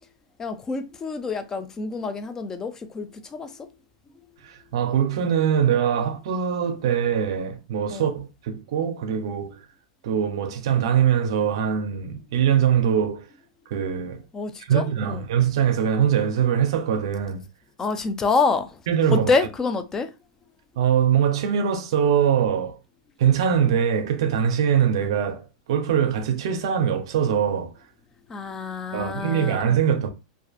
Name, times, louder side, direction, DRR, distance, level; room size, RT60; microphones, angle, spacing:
voice 1, 0.4-3.7 7.9-8.1 14.3-15.2 17.8-18.8 19.1-20.1 28.3-29.6, left 4 dB, 20° left, 0.3 m, -27 dB
voice 2, 4.4-9.6 10.0-13.2 13.7-14.2 14.7-17.4 18.9-19.3 20.8-22.8 23.2-27.7 28.9-30.1, right 8 dB, 70° right, 0.5 m, -22 dB
2.5 x 2.4 x 2.3 m
supercardioid pair, 135°, 3 cm